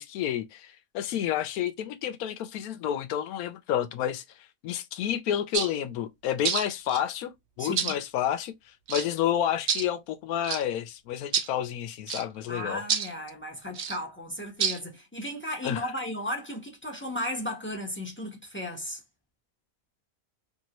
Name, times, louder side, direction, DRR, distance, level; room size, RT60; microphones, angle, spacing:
voice 1, 0.0-4.2 4.6-8.5 8.9-12.8 15.6-15.9, left 10 dB, 80° left, 1.0 m, -30 dB
sound 1, 5.5-5.7 6.4-7.0 7.8-8.0 8.9-9.1 9.7-9.8 10.4-10.6 11.3-11.5 12.1-12.2 12.9-13.1 13.7-14.0 14.6-14.8, right 7 dB, 60° right, 0.8 m, -28 dB
voice 2, 7.6-8.0 12.5-19.0, equal, 10° left, 0.7 m, -35 dB
2.9 x 2.7 x 2.8 m
omnidirectional pair, 1.6 m